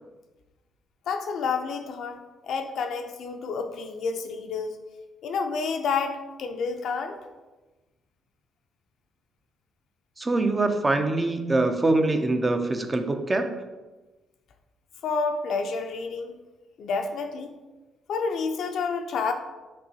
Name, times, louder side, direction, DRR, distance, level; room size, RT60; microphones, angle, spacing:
voice 1, 1.1-2.2 2.4-4.8 5.2-7.2 15.0-16.3 16.8-17.5 18.1-19.3, left 5 dB, 70° left, 6 dB, 0.4 m, -29 dB
voice 2, 10.2-13.5, right 2 dB, 25° right, 6 dB, 0.4 m, -24 dB
5.3 x 3.0 x 2.8 m, 1.2 s
cardioid pair, 90°, 0 cm